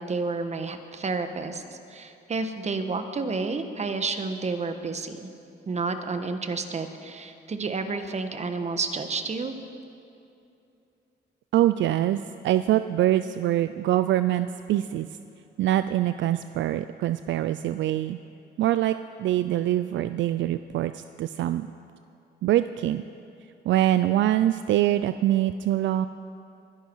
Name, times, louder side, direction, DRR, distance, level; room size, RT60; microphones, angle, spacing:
voice 1, 0.0-1.6 1.9-5.3 5.7-9.5, right 4 dB, 35° right, 8 dB, 1.2 m, -30 dB
voice 2, 11.5-15.1 15.6-18.2 18.6-21.7 22.4-23.0 23.6-26.1, right 13 dB, 70° right, 12 dB, 0.4 m, -24 dB
23.0 x 10.5 x 4.6 m, 2.6 s
cardioid pair, 90°, 20 cm